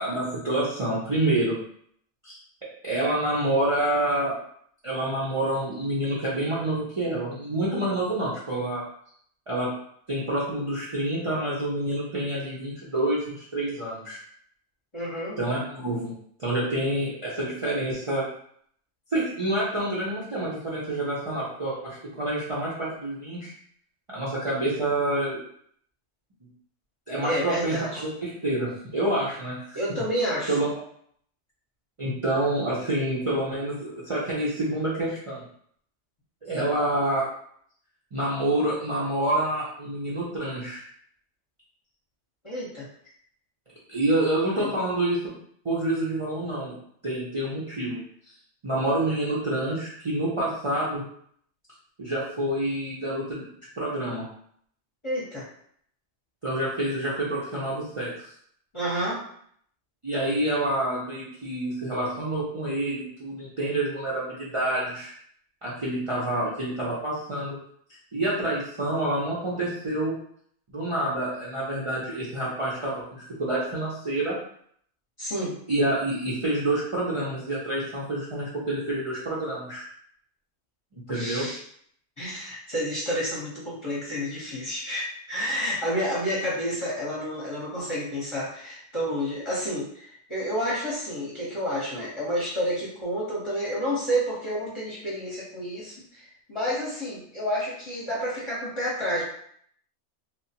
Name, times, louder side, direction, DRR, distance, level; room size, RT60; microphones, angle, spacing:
voice 1, 0.0-1.5 2.2-2.4 2.8-4.4 4.8-8.8 9.5-9.7 10.1-14.2 15.4-16.1 16.4-18.3 19.1-23.5 24.1-25.4 27.1-27.7 28.0-29.8 30.5-30.7 32.0-35.4 36.4-37.3 38.1-40.8 43.9-45.2 45.6-46.7 47.0-48.0 48.6-51.0 52.0-53.5 53.8-54.2 56.4-58.3 60.0-65.1 65.6-67.6 68.1-70.1 70.7-74.4 75.7-79.8 81.1-81.5, right 1 dB, 40° right, -8 dB, 0.5 m, -27 dB
voice 2, 14.9-15.4 27.2-28.0 29.7-30.6 42.4-42.9 44.6-44.7 55.0-55.4 58.7-59.2 75.2-75.6 81.1-81.6 82.2-99.2, equal, 30° left, -7 dB, 0.7 m, -30 dB
2.9 x 2.1 x 2.8 m, 0.64 s
omnidirectional pair, 1.2 m